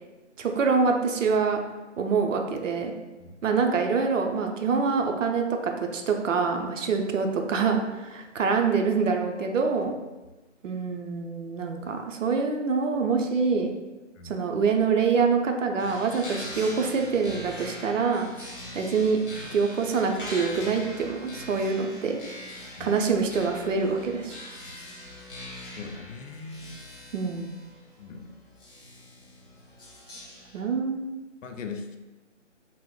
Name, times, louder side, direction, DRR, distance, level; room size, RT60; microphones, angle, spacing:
voice 1, 0.4-1.6 2.0-2.9 3.4-9.9 10.6-13.7 14.2-18.3 18.7-19.2 19.5-22.2 22.8-24.3 27.1-27.5 30.5-31.0, right 5 dB, 80° right, 3 dB, 0.6 m, -25 dB
sound 1, 15.8-30.6, left 1 dB, 45° left, 0.9 m, -42 dB
voice 2, 25.8-26.8 28.0-28.3 31.4-32.0, left 4 dB, 80° left, 5 dB, 0.5 m, -39 dB
3.5 x 2.0 x 2.3 m, 1.1 s
hypercardioid pair, 175°, 38 cm